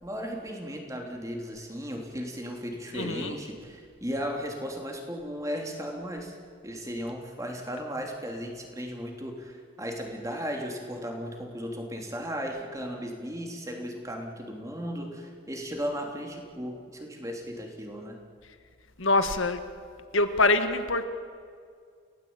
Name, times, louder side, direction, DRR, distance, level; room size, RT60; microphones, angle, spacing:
voice 1, 0.0-6.4 6.6-18.2, equal, 15° right, 2 dB, 3.1 m, -36 dB
voice 2, 2.9-3.4 19.0-19.6 20.1-21.1, left 2 dB, 85° left, 9 dB, 1.8 m, -24 dB
29.5 x 18.5 x 8.8 m, 2.1 s
head